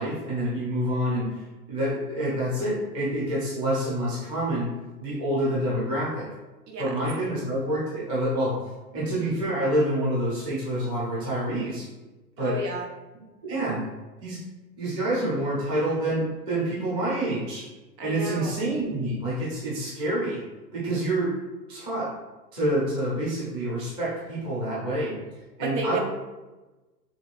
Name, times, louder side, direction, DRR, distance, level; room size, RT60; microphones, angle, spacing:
voice 1, 0.0-4.7 5.0-6.3 6.8-8.6 8.9-11.9 12.4-12.6 13.5-13.9 14.2-14.4 14.8-17.7 18.0-20.4 20.7-21.4 21.7-22.1 22.5-25.2 25.6-26.0, right 1 dB, 10° right, -8 dB, 0.5 m, -27 dB
voice 2, 12.4-12.9 18.0-18.5 25.6-26.0, right 2 dB, 70° right, 1 dB, 0.8 m, -32 dB
3.0 x 2.8 x 2.4 m, 1.1 s
hypercardioid pair, 115°, 50 cm